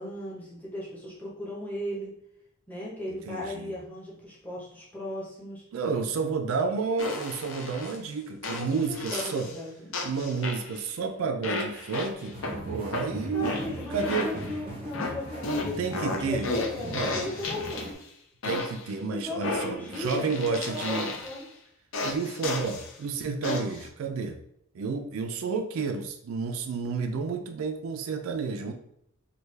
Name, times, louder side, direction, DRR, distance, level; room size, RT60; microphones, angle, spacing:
voice 1, 0.0-2.1 2.7-5.6 8.5-9.9 13.3-17.9 19.1-21.5, left 1 dB, 5° left, -7 dB, 0.8 m, -37 dB
voice 2, 3.3-3.7 5.7-9.5 10.0-12.4 12.6-13.5 13.9-14.3 15.8-16.5 16.8-17.1 18.4-21.1 22.0-24.4 24.7-28.7, right 5 dB, 70° right, 6 dB, 0.4 m, -30 dB
sound 1, 7.0-8.0 8.4-9.6 9.9-10.9 11.4-12.5 12.9-14.6 14.9-18.0 18.4-18.9 19.4-21.4 21.9-22.9 23.4-23.9, left 2 dB, 60° left, 0.5 m, -33 dB
sound 2, 12.3-17.9, equal, 25° right, 0.6 m, -39 dB
3.3 x 2.3 x 3.2 m, 0.74 s
head